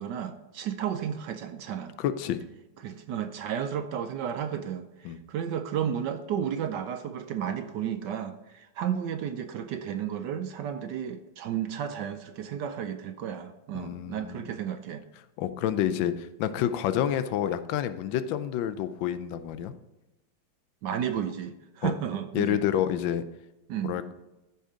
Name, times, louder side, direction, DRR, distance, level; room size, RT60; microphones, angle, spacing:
voice 1, 0.0-2.0 2.8-15.0 20.8-22.6 23.7-23.9, right 9 dB, 70° right, 8 dB, 1.1 m, -33 dB
voice 2, 2.0-2.4 5.0-5.2 13.7-14.5 15.4-19.7 21.8-21.9 22.3-23.2 23.8-24.1, left 10 dB, 75° left, 11 dB, 1.3 m, -28 dB
14.5 x 5.5 x 3.7 m, 0.99 s
omnidirectional pair, 2.2 m